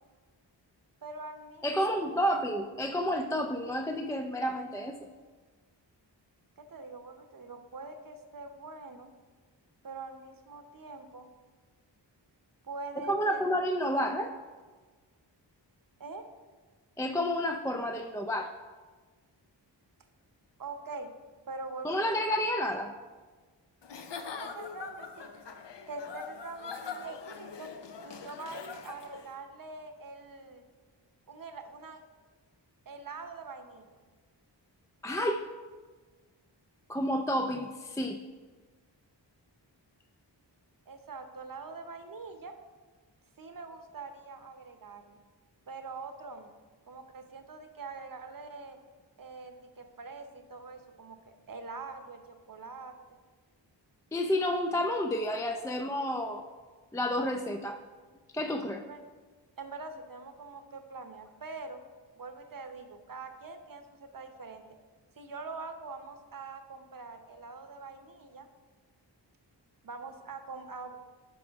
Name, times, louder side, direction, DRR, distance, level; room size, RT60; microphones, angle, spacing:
voice 1, 1.0-2.5 6.6-9.1 9.8-11.3 12.6-13.4 16.0-16.3 20.6-21.1 21.5-22.2 24.4-25.4 25.9-27.7 28.0-30.6 31.3-32.0 32.9-33.9 40.9-42.5 43.4-45.2 45.7-46.5 46.9-48.8 49.2-53.2 58.8-59.0 59.6-61.8 62.2-64.6 65.2-68.5 69.8-71.0, right 3 dB, 45° right, 7 dB, 0.8 m, -44 dB
voice 2, 1.6-5.0 13.1-14.3 17.0-18.5 21.8-22.9 35.0-35.5 36.9-38.2 54.1-56.4 56.9-57.8 58.3-58.8, equal, 10° left, 4 dB, 0.3 m, -30 dB
Giggle / Chuckle chortle, 23.8-29.3, left 5 dB, 65° left, 0.7 m, -43 dB
11.0 x 4.9 x 3.5 m, 1.4 s
wide cardioid pair, 60°, 45 cm